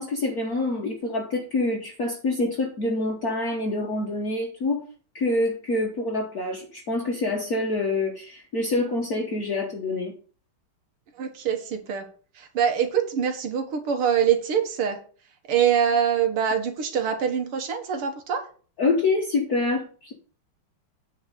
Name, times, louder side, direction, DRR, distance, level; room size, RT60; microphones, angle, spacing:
voice 1, 0.0-4.8 5.1-10.1 18.8-20.1, left 2 dB, 45° left, 0 dB, 1.6 m, -26 dB
voice 2, 11.2-12.1 12.4-15.0 15.5-18.4, right 8 dB, 85° right, 5 dB, 2.4 m, -24 dB
9.4 x 4.7 x 6.4 m, 0.41 s
omnidirectional pair, 2.4 m